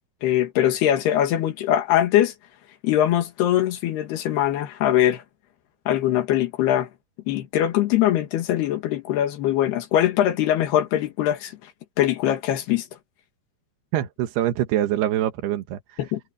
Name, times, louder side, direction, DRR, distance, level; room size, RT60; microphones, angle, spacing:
voice 1, 0.2-2.3 2.8-5.2 5.9-6.9 7.3-11.6 12.0-12.9 16.0-16.2, left 12 dB, 90° left, 3.7 m, -22 dB
voice 2, 13.9-16.0, right 12 dB, 85° right, 3.4 m, -24 dB
omnidirectional pair, 4.5 m